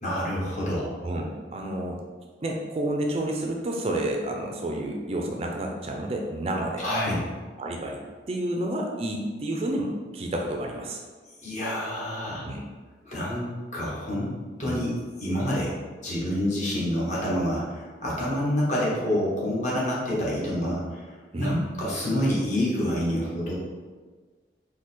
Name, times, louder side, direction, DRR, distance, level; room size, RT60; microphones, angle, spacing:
voice 1, 0.0-1.0 6.8-7.2 11.4-12.5 13.0-14.3 14.6-14.9 15.2-15.7 16.0-23.5, equal, 40° left, -6 dB, 1.2 m, -27 dB
voice 2, 1.0-2.0 2.4-6.9 7.6-8.0 8.3-11.0 12.4-12.7 14.6-14.8 21.3-21.6, right 1 dB, 35° right, 1 dB, 0.4 m, -30 dB
4.7 x 2.2 x 4.2 m, 1.4 s
head